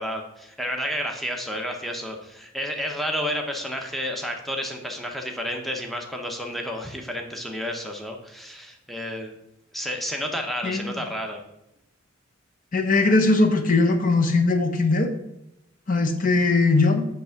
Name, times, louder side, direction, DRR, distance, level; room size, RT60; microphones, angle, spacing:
voice 1, 0.0-9.3 9.7-11.4, equal, ahead, 1 dB, 0.8 m, -31 dB
voice 2, 12.7-15.1 15.9-17.0, left 3 dB, 40° left, 5 dB, 0.8 m, -20 dB
8.1 x 3.4 x 5.8 m, 0.84 s
head